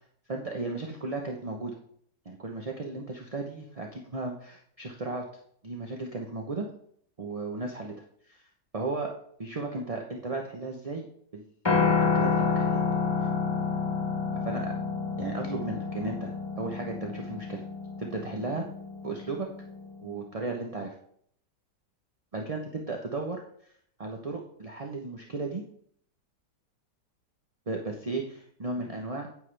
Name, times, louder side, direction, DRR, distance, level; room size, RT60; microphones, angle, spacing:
voice 1, 0.3-1.7 2.2-5.3 5.6-6.7 7.2-7.9 8.2-8.5 8.7-9.1 9.4-11.1 11.3-11.5 11.7-12.8 13.2-13.3 14.4-14.7 15.2-17.6 18.0-18.7 19.0-19.5 20.0-20.9 22.3-23.4 24.0-25.6 27.7-29.3, right 3 dB, 30° right, 1 dB, 0.6 m, -35 dB
Piano, 11.7-19.9, left 5 dB, 15° left, 1.2 m, -29 dB
9.5 x 9.1 x 3.4 m, 0.64 s
omnidirectional pair, 1.9 m